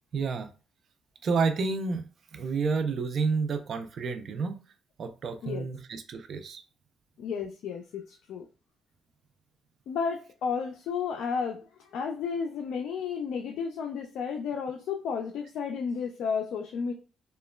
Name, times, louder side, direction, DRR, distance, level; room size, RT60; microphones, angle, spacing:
voice 1, 0.1-0.5 1.2-4.6 5.0-6.6, right 4 dB, 55° right, 8 dB, 0.4 m, -30 dB
voice 2, 7.2-8.5 9.9-16.9, left 6 dB, 80° left, 3 dB, 0.3 m, -32 dB
2.9 x 2.1 x 2.2 m, 0.33 s
cardioid pair, 90°, 0 cm